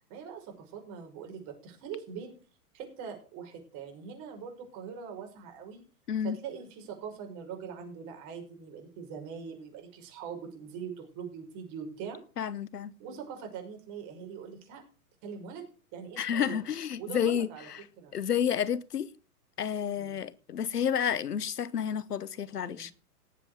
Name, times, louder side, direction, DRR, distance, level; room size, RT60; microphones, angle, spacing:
voice 1, 0.1-2.4 2.7-5.8 6.2-12.2 13.0-14.8 15.2-15.6 15.9-16.6 17.0-17.7 18.0-18.1 19.9-20.2 22.6-22.9, right 7 dB, 40° right, 6.1 m, -42 dB
voice 2, 6.1-6.4 12.4-12.9 16.2-17.8 18.1-19.1 19.6-22.9, left 8 dB, 85° left, 1.0 m, -30 dB
18.0 x 7.8 x 4.9 m
hypercardioid pair, 115°, 46 cm